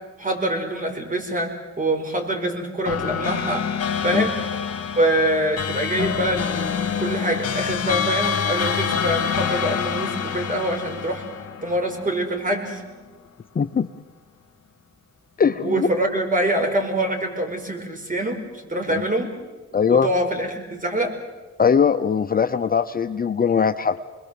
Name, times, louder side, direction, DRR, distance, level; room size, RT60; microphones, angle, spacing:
voice 1, 0.2-3.7 4.0-4.4 5.0-11.2 11.6-12.8 15.6-18.4 18.7-19.3 19.9-21.1, right 1 dB, 25° right, 4 dB, 5.2 m, -25 dB
sound 1, 2.8-12.5, left 7 dB, 55° left, 2.7 m, -26 dB
voice 2, 13.6-13.9 15.4-15.9 19.0-19.1 19.7-20.1 21.6-24.0, left 6 dB, 30° left, 9 dB, 0.8 m, -20 dB
27.5 x 21.0 x 7.7 m, 1.3 s
cardioid pair, 90°, 30 cm